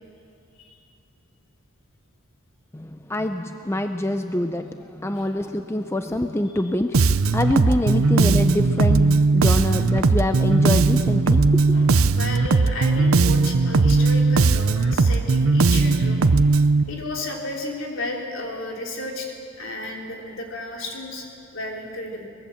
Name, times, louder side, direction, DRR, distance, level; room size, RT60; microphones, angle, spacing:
voice 1, 2.7-6.9 7.3-12.2, left 1 dB, 10° left, 7 dB, 0.6 m, -25 dB
Bass guitar, 6.9-16.8, right 3 dB, 80° right, 0.7 m, -18 dB
voice 2, 11.7-16.3 16.9-21.3 21.5-22.3, left 2 dB, 65° left, 0 dB, 3.5 m, -33 dB
23.5 x 20.5 x 7.2 m, 2.5 s
head